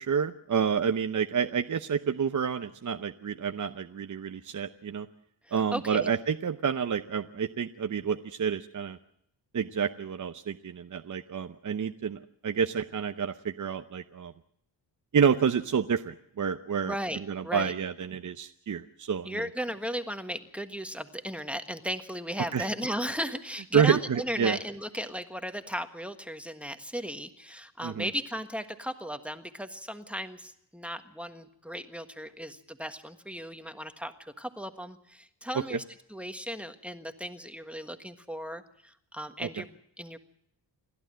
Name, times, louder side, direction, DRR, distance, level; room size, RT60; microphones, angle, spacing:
voice 1, 0.0-5.1 5.5-9.0 9.5-14.3 15.1-17.0 17.3-19.4 22.5-22.7 23.7-24.6 27.8-28.1 35.7-35.8 39.4-39.5, right 7 dB, 40° right, 8 dB, 0.8 m, -29 dB
voice 2, 5.5-6.1 16.8-17.7 19.2-35.8 36.1-40.2, equal, 5° right, 8 dB, 1.5 m, -36 dB
29.0 x 12.0 x 7.6 m, 0.74 s
cardioid pair, 95°, 46 cm